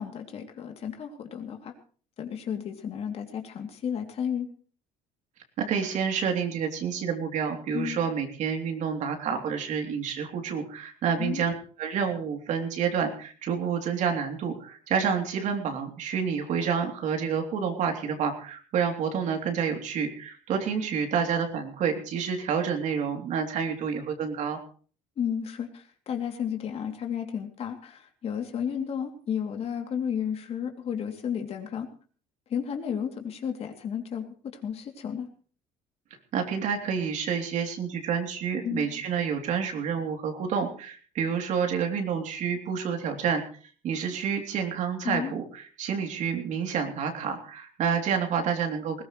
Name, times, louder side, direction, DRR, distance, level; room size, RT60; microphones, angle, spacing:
voice 1, 0.0-1.7 2.2-4.5 7.7-8.0 11.2-11.4 25.2-31.9 32.5-35.3 38.6-38.9 45.0-45.3, left 8 dB, 45° left, 4 dB, 3.0 m, -32 dB
voice 2, 5.6-24.6 36.3-43.4 43.8-49.0, right 6 dB, 60° right, 4 dB, 3.3 m, -29 dB
20.5 x 17.5 x 3.3 m, 0.41 s
cardioid pair, 120°, 14 cm